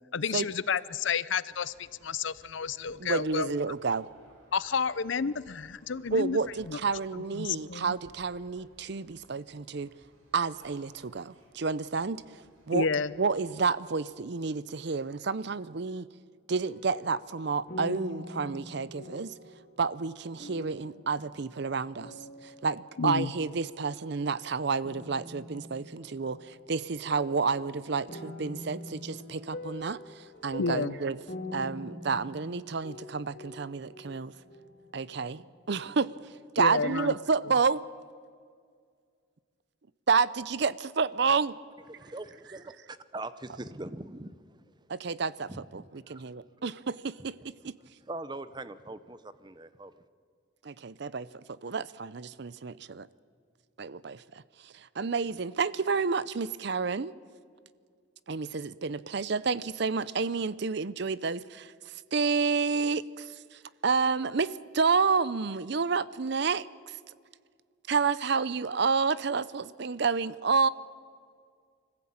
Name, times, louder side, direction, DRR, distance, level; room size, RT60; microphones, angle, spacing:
voice 1, 0.1-3.5 4.5-6.4 6.7-6.8 7.1-7.9 12.7-13.1 23.0-23.3 30.6-31.0 36.6-37.1, left 5 dB, 65° left, 18 dB, 0.6 m, -30 dB
sound 1, 1.5-14.6, right 1 dB, 85° right, 4.7 m, -61 dB
voice 2, 3.0-4.1 6.1-9.9 10.3-12.4 12.7-12.9 13.2-16.1 16.5-19.3 19.8-22.1 22.4-31.2 31.5-34.3 34.9-36.1 36.6-37.8 40.1-41.6 44.9-47.7 50.6-51.3 51.6-53.1 53.8-57.1 58.3-67.0 67.9-70.7, right 5 dB, 55° right, 18 dB, 0.6 m, -30 dB
sound 2, 16.6-23.2 23.4-24.3 24.8-35.5 35.8-35.9, left 2 dB, 40° left, 2.8 m, -45 dB
voice 3, 41.9-44.7 45.5-46.3 47.6-47.7 48.1-49.9, right 2 dB, 20° right, 13 dB, 0.7 m, -42 dB
24.5 x 15.5 x 8.7 m, 2.1 s
head